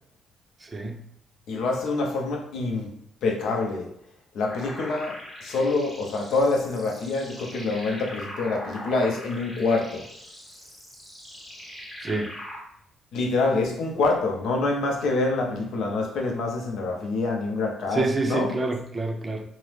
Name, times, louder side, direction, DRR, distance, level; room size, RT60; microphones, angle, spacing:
voice 1, 0.6-1.0 12.0-12.3 17.9-19.4, right 3 dB, 30° right, 3 dB, 0.5 m, -27 dB
voice 2, 1.5-3.0 3.2-3.9 4.3-10.1 13.1-18.7, left 3 dB, 75° left, 1 dB, 0.6 m, -26 dB
sound 1, 4.5-12.6, equal, 15° left, 0.7 m, -41 dB
2.7 x 2.0 x 3.2 m, 0.72 s
cardioid pair, 90°, 0 cm